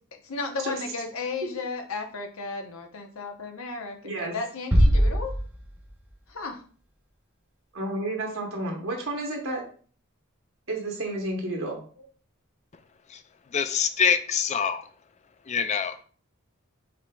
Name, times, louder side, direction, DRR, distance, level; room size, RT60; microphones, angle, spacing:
voice 1, 0.2-5.4 6.3-6.6, left 4 dB, 75° left, 4 dB, 0.8 m, -34 dB
voice 2, 4.0-4.3 7.7-9.6 10.7-12.0, right 2 dB, 65° right, 0 dB, 1.0 m, -31 dB
sound 1, 4.7-6.3, equal, 5° right, 0.6 m, -22 dB
voice 3, 13.5-14.8 15.5-16.0, left 7 dB, 30° left, 10 dB, 0.3 m, -25 dB
5.1 x 4.1 x 2.3 m, 0.43 s
head